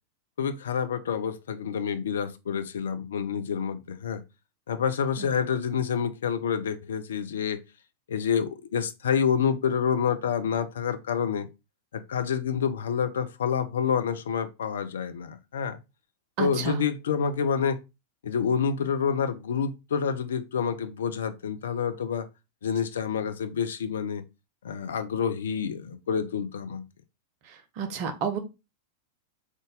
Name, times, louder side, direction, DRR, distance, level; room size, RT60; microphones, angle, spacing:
voice 1, 0.4-4.2 4.7-7.6 8.1-11.5 11.9-15.8 16.4-17.8 18.2-22.3 22.6-24.2 24.6-26.8, left 7 dB, 65° left, 0.5 m, -28 dB
voice 2, 16.4-16.8 27.4-28.4, right 5 dB, 45° right, 0.9 m, -31 dB
3.9 x 3.7 x 3.6 m
figure-of-eight pair, 90°, 0 cm